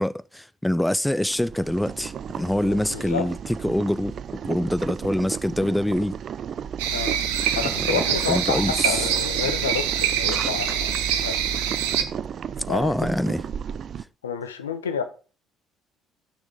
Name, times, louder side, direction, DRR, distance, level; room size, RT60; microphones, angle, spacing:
voice 1, 0.0-3.4 3.6-4.1 4.4-6.1 7.6-9.0 12.7-13.4, left 1 dB, 5° left, 0.5 m, -25 dB
Boiling, 1.3-14.0, right 8 dB, 50° right, 0.5 m, -34 dB
voice 2, 2.7-3.3 6.9-7.2 7.5-10.9 11.2-11.5 12.7-13.1 14.2-15.0, left 6 dB, 85° left, 0.9 m, -29 dB
sound 1, 6.8-12.0, right 9 dB, 75° right, 0.9 m, -25 dB
13.5 x 6.4 x 3.5 m
hypercardioid pair, 55°, 0 cm